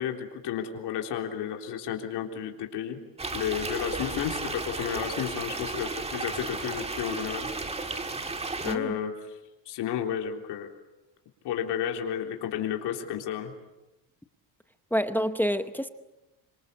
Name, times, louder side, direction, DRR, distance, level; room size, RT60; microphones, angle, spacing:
voice 1, 0.0-3.0 3.3-7.5 8.6-9.4 9.7-10.7 11.4-13.5, left 9 dB, 60° left, 3 dB, 3.7 m, -32 dB
sound 1, 3.2-8.8, right 3 dB, 15° right, 1.8 m, -34 dB
voice 2, 8.6-9.0 14.9-15.9, equal, 5° left, 9 dB, 0.8 m, -27 dB
26.0 x 26.0 x 8.2 m, 1.0 s
cardioid pair, 160°, 47 cm